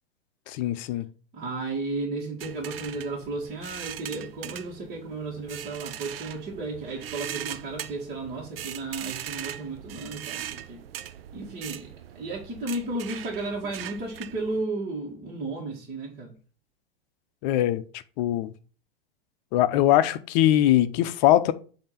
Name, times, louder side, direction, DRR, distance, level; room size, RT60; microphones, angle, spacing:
voice 1, 0.5-1.1 17.4-17.8 18.2-18.5 19.5-21.5, left 13 dB, 45° left, 0.7 m, -21 dB
voice 2, 1.3-10.9 11.3-16.4, right 2 dB, 30° right, 1.9 m, -34 dB
sound 1, 2.4-14.6, right 11 dB, 70° right, 0.5 m, -40 dB
8.6 x 2.9 x 5.7 m
figure-of-eight pair, 95°, 30 cm